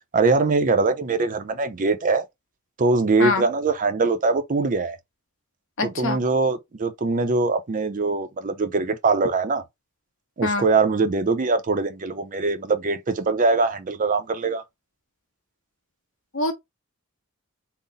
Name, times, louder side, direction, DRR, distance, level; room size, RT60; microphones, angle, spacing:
voice 1, 0.1-2.2 2.8-5.0 5.8-9.6 10.4-14.6, right 3 dB, 35° right, 0.5 m, -22 dB
voice 2, 5.8-6.2 10.4-10.7 16.3-16.5, left 3 dB, 60° left, 1.0 m, -24 dB
3.8 x 2.0 x 3.8 m
head